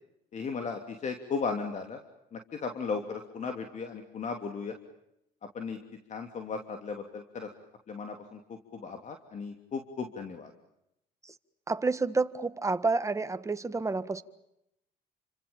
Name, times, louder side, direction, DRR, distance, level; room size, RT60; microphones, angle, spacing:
voice 1, 0.3-2.0 2.3-4.8 5.5-5.8 6.1-7.5 7.9-10.5, left 5 dB, 45° left, 3.1 m, -36 dB
voice 2, 11.7-14.2, right 3 dB, 20° right, 1.6 m, -29 dB
30.0 x 25.5 x 7.2 m
cardioid pair, 110°, 17 cm